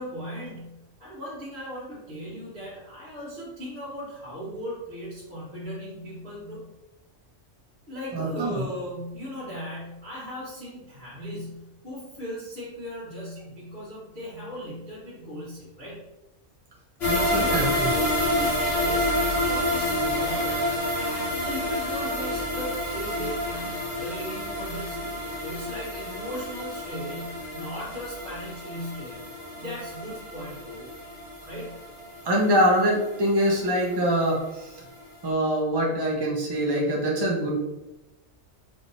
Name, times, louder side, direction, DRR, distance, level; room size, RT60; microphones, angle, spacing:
voice 1, 0.0-6.7 7.9-16.0 17.3-20.6 20.9-29.2 29.5-30.9 31.5-31.8, equal, 45° right, -11 dB, 1.5 m, -38 dB
voice 2, 8.1-8.6 17.1-17.7 32.2-34.8 35.2-37.6, equal, 20° right, -2 dB, 0.8 m, -24 dB
sound 1, 17.0-34.1 34.4-34.5 34.9-35.0, left 1 dB, 55° left, 1.6 m, -29 dB
4.7 x 3.6 x 2.6 m, 0.95 s
omnidirectional pair, 1.3 m